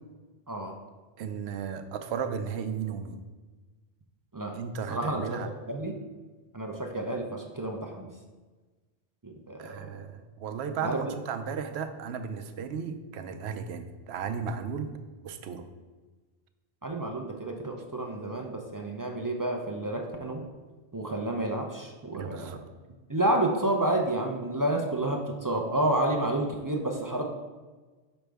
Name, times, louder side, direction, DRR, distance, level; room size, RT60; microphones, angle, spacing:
voice 1, 1.2-3.2 4.5-5.5 9.6-14.9 15.2-15.7 22.1-22.6, right 6 dB, 80° right, 9 dB, 0.8 m, -35 dB
voice 2, 4.9-5.4 5.7-5.9 6.5-8.1 9.2-9.9 10.8-11.0 16.8-20.4 20.9-22.5 23.1-27.2, right 1 dB, 30° right, 2 dB, 0.4 m, -30 dB
6.2 x 5.1 x 3.4 m, 1.3 s
omnidirectional pair, 1.1 m